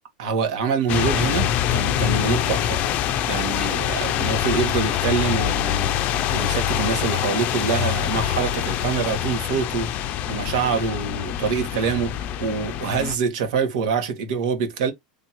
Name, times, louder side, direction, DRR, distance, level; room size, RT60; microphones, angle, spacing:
voice 1, 0.2-2.8 3.3-6.0 6.3-9.9 10.3-14.9, right 6 dB, 70° right, 1.6 m, -25 dB
sound 1, 0.9-13.1, left 11 dB, 40° left, 0.5 m, -24 dB
3.4 x 2.9 x 4.3 m
supercardioid pair, 135°, 4 cm